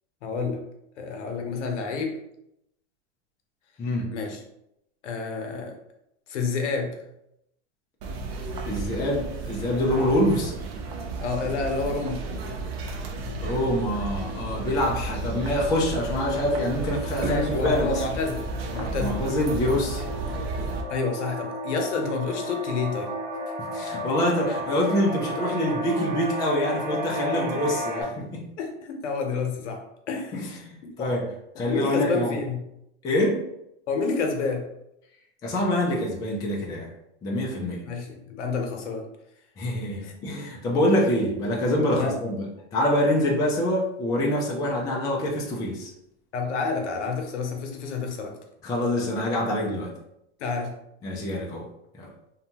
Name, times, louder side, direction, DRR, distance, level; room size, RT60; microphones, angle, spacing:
voice 1, 0.2-0.6 1.0-2.2 4.1-4.4 5.0-5.7 6.3-7.1 11.2-12.2 17.2-19.2 20.9-23.1 27.3-27.5 28.6-29.8 30.1-31.1 31.6-32.6 33.9-34.7 37.7-39.0 40.0-40.1 42.0-42.2 46.3-48.3 50.4-50.7, left 4 dB, 80° left, 3 dB, 0.8 m, -29 dB
voice 2, 3.8-4.1 8.6-10.5 13.4-18.0 19.0-20.0 23.7-28.5 30.3-31.3 31.6-32.4 33.0-33.4 35.4-36.9 37.2-37.8 39.6-45.9 48.6-49.9 51.0-51.7 51.9-52.1, left 1 dB, 10° left, -2 dB, 0.3 m, -25 dB
sound 1, 8.0-20.8, right 3 dB, 60° right, 0.6 m, -33 dB
sound 2, 10.3-28.0, equal, 25° right, 0.9 m, -35 dB
2.7 x 2.2 x 2.8 m, 0.80 s
hypercardioid pair, 120°, 35 cm